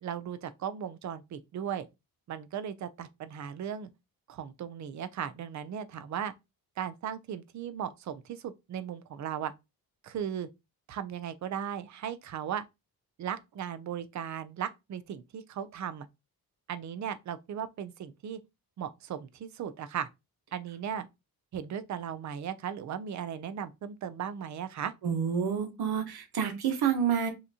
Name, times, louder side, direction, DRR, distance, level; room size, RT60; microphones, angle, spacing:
voice 1, 0.0-1.9 2.3-3.9 4.3-6.3 6.8-9.5 10.0-10.5 10.9-12.7 13.2-16.1 16.7-18.4 18.8-20.1 20.5-21.1 21.5-24.9, right 9 dB, 50° right, 0.5 m, -37 dB
voice 2, 25.0-27.3, right 7 dB, 80° right, 1.1 m, -28 dB
5.8 x 2.9 x 2.7 m
wide cardioid pair, 170°, 38 cm